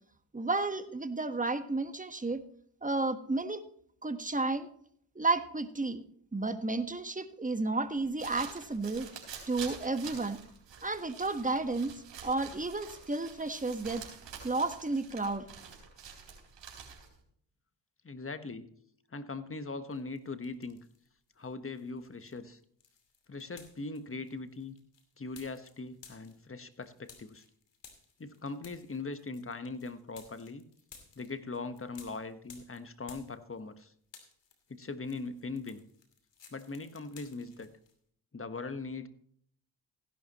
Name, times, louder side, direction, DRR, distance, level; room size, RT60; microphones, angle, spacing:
voice 1, 0.3-2.4 2.8-3.6 4.0-4.7 5.1-6.0 6.3-9.1 9.5-10.4 10.8-11.9 12.2-14.0 14.4-15.5, right 3 dB, 15° right, 9 dB, 1.4 m, -32 dB
Walking through leaves, 8.0-17.2, right 6 dB, 75° right, 3.8 m, -48 dB
voice 2, 18.0-18.7 19.1-20.8 21.4-22.6 23.3-24.8 25.2-27.4 28.2-30.7 31.1-33.9 34.7-35.8 36.5-37.7 38.3-39.1, left 3 dB, 30° left, 11 dB, 1.3 m, -40 dB
sound 1, 19.9-21.1 21.4-33.8 34.0-37.9, left 6 dB, 70° left, 2.7 m, -57 dB
16.0 x 11.0 x 3.0 m, 0.64 s
supercardioid pair, 50°, 44 cm